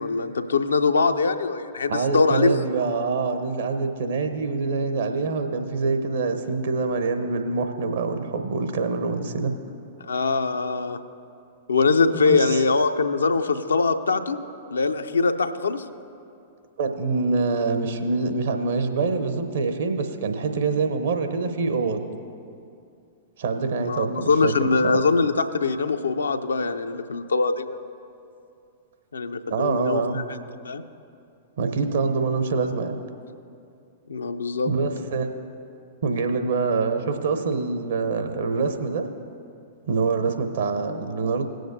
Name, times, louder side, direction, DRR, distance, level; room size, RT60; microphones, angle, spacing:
voice 1, 0.0-2.5 10.0-11.0 11.7-14.4 14.7-15.8 23.7-27.8 29.1-30.4 30.6-30.8 34.1-34.7, left 4 dB, 75° left, 8 dB, 0.5 m, -23 dB
voice 2, 1.9-9.5 12.1-12.6 16.8-22.1 23.4-24.7 29.5-30.2 31.6-33.0 34.7-35.3 36.0-39.1 39.9-41.5, right 4 dB, 60° right, 6 dB, 0.9 m, -25 dB
19.0 x 7.6 x 2.7 m, 2.5 s
figure-of-eight pair, 100°, 0 cm